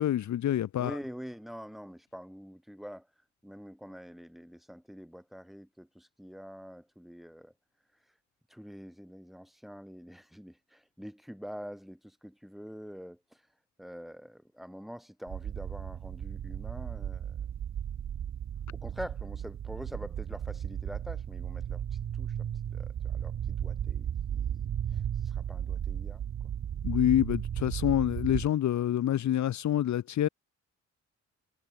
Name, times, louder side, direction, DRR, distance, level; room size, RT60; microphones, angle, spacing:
voice 1, 0.0-1.0 26.8-30.3, left 11 dB, 70° left, 1.0 m, -27 dB
voice 2, 0.8-3.1 3.4-7.5 8.5-13.4 13.8-17.5 18.7-26.2, equal, ahead, 6.3 m, -46 dB
sound 1, 15.3-28.5, right 9 dB, 70° right, 3.6 m, -35 dB
wide cardioid pair, 145°, 29 cm